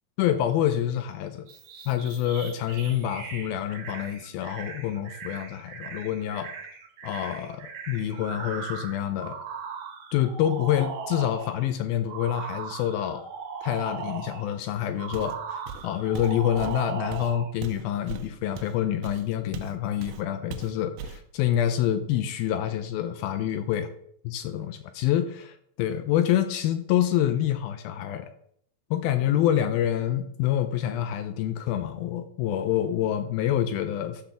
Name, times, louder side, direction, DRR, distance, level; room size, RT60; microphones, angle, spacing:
voice 1, 0.2-1.5 1.9-6.5 7.0-9.4 10.1-13.2 13.6-23.9 24.3-28.3 28.9-34.2, left 11 dB, 80° left, 9 dB, 2.3 m, -27 dB
sound 1, 1.5-11.6 12.1-14.5 15.0-17.5, right 6 dB, 60° right, 2.2 m, -38 dB
Walk footsteps, 15.1-15.4 15.7-19.8 20.0-20.2 20.5-21.2, right 6 dB, 80° right, 2.7 m, -39 dB
11.5 x 4.4 x 6.8 m, 0.68 s
omnidirectional pair, 4.7 m